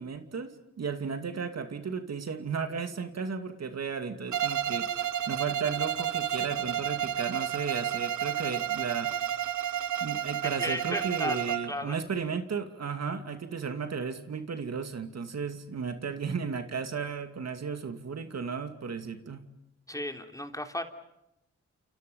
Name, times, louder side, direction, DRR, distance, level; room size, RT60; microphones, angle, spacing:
voice 1, 0.0-9.1 10.0-19.4, right 5 dB, 60° right, 7 dB, 2.5 m, -34 dB
Bowed string instrument, 4.3-11.8, right 10 dB, 75° right, 1.0 m, -31 dB
voice 2, 10.4-12.0 19.9-20.8, left 1 dB, 10° left, 5 dB, 3.3 m, -35 dB
29.0 x 29.0 x 5.5 m, 0.84 s
cardioid pair, 65°, 30 cm